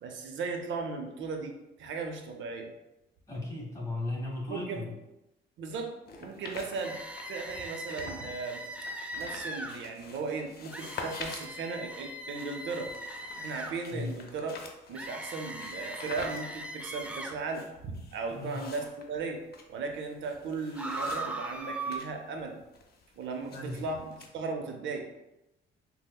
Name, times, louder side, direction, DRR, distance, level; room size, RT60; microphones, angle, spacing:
voice 1, 0.0-1.5 1.8-2.7 4.5-4.9 5.6-7.0 7.3-8.6 9.1-12.9 13.4-14.6 14.9-19.4 19.7-22.6 23.2-25.3, right 4 dB, 70° right, 3 dB, 0.5 m, -37 dB
voice 2, 3.3-4.9 13.9-14.1 18.3-18.6 23.5-23.8, left 2 dB, 15° left, -4 dB, 1.2 m, -36 dB
sound 1, 6.1-8.3 8.6-22.1 22.4-24.3, left 4 dB, 55° left, 0.5 m, -46 dB
sound 2, 6.8-9.8 10.7-13.7 15.0-17.4 20.8-22.0, right 1 dB, 5° right, 0.4 m, -39 dB
5.3 x 2.0 x 2.2 m, 0.93 s
cardioid pair, 90°, 20 cm